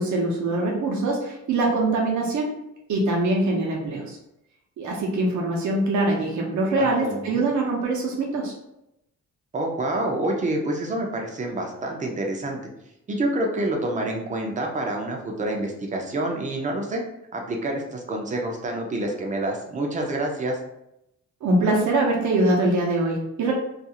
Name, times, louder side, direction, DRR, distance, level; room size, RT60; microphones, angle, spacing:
voice 1, 0.0-2.6 2.9-4.2 4.8-8.5 21.4-23.5, right 2 dB, 75° right, -2 dB, 0.7 m, -23 dB
voice 2, 6.8-7.5 9.5-12.6 13.1-17.0 17.3-20.6, right 1 dB, 25° right, 1 dB, 0.4 m, -27 dB
2.4 x 2.3 x 2.8 m, 0.84 s
wide cardioid pair, 165°, 29 cm